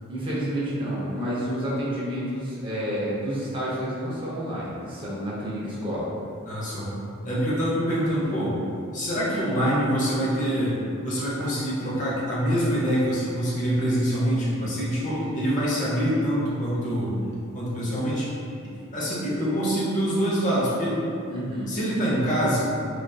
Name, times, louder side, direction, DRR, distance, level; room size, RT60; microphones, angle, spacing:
voice 1, 0.1-6.1 21.3-21.7, equal, 25° right, -8 dB, 0.5 m, -29 dB
voice 2, 6.4-6.9 7.2-8.5 8.9-10.8 11.0-17.1 17.5-18.3 18.9-21.0 21.7-22.6, equal, 35° left, -7 dB, 0.6 m, -25 dB
2.6 x 2.3 x 2.3 m, 2.4 s
head